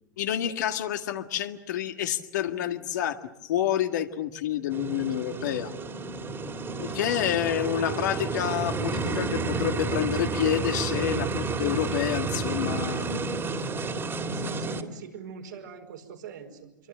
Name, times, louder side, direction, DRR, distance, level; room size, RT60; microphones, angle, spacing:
voice 1, 0.2-5.7 6.8-13.4, left 11 dB, 70° left, 6 dB, 1.9 m, -28 dB
sound 1, 4.7-14.8, right 3 dB, 25° right, 2.6 m, -31 dB
voice 2, 6.9-7.3 14.3-16.9, right 7 dB, 80° right, 2 dB, 5.0 m, -43 dB
26.5 x 24.0 x 7.6 m, 0.92 s
hypercardioid pair, 95°, 10 cm